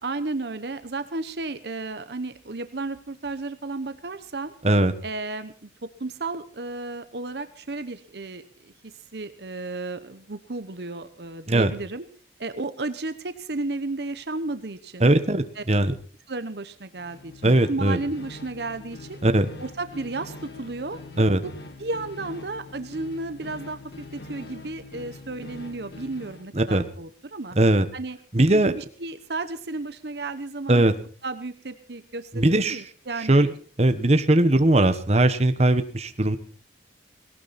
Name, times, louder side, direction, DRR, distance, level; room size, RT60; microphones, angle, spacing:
voice 1, 0.0-4.5 5.0-12.0 12.4-15.1 15.6-15.7 16.3-19.2 19.6-21.5 21.8-27.6 27.9-28.2 28.5-30.8 31.2-33.5, right 3 dB, 65° right, 11 dB, 1.0 m, -33 dB
voice 2, 15.0-15.9 17.4-18.0 19.2-19.5 21.2-21.4 26.5-26.8 27.5-27.9 28.3-28.7 30.7-30.9 32.3-32.8 33.3-33.5 33.8-36.4, right 1 dB, 35° right, 9 dB, 1.3 m, -19 dB
sound 1, 16.9-26.5, left 2 dB, 65° left, 2.4 m, -43 dB
18.0 x 18.0 x 4.2 m, 0.42 s
head